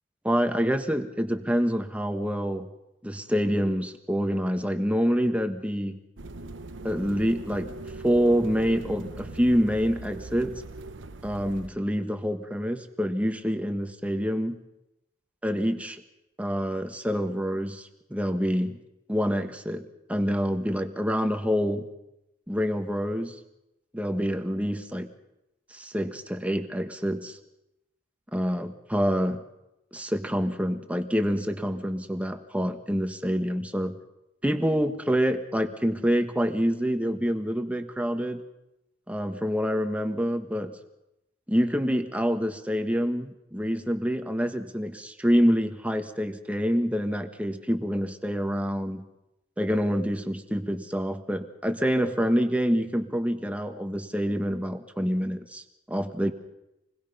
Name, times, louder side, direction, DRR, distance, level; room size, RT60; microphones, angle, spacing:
voice 1, 0.2-2.7 3.0-6.0 6.8-7.7 8.0-10.5 11.2-14.6 15.4-16.0 16.4-18.8 19.1-19.8 20.1-21.9 22.5-23.3 23.9-25.1 25.7-27.4 28.3-29.4 29.9-34.0 34.4-38.4 39.1-40.7 41.5-49.0 49.6-56.3, equal, 5° right, 6 dB, 1.5 m, -27 dB
sound 1, 6.2-11.7, right 2 dB, 80° right, 1.0 m, -40 dB
27.5 x 21.0 x 5.6 m, 0.89 s
head